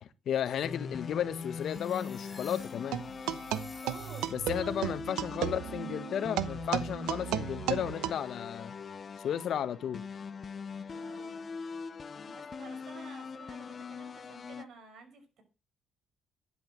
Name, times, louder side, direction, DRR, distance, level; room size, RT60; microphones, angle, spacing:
voice 1, 0.0-3.0 4.3-8.7 9.2-10.0, left 9 dB, 65° left, 1.4 m, -34 dB
sound 1, 0.6-14.6, left 5 dB, 40° left, 0.9 m, -42 dB
sound 2, 1.4-4.7, left 2 dB, 25° left, 3.8 m, -52 dB
sound 3, 2.9-8.1, right 12 dB, 85° right, 0.9 m, -34 dB
voice 2, 3.8-5.0 10.9-11.5 11.7-15.4, right 5 dB, 65° right, 5.6 m, -51 dB
11.0 x 9.7 x 7.6 m
cardioid pair, 80°, 0 cm